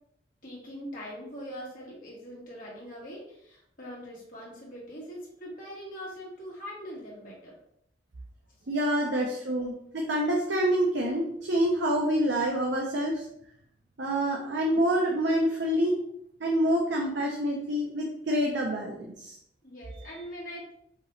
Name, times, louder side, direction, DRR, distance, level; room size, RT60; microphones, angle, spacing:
voice 1, 0.4-7.6 14.3-14.6 19.6-20.7, equal, 50° left, -5 dB, 1.8 m, -42 dB
voice 2, 8.7-13.2 14.0-16.0 16.4-19.4, equal, 70° right, -1 dB, 0.7 m, -27 dB
5.0 x 3.0 x 3.2 m, 0.73 s
head